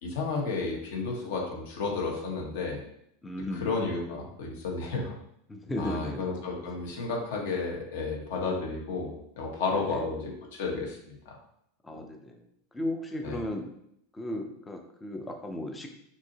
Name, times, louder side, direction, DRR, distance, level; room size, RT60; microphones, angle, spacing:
voice 1, 0.0-2.8 3.5-5.1 5.8-11.4 11.9-12.0 13.2-13.4, left 3 dB, 70° left, -1 dB, 1.3 m, -32 dB
voice 2, 3.2-3.7 5.5-6.4 9.7-10.0 11.8-12.4 12.7-13.7 14.1-15.9, left 1 dB, 10° left, 3 dB, 0.4 m, -35 dB
5.9 x 2.7 x 2.8 m, 0.73 s
supercardioid pair, 170°, 0 cm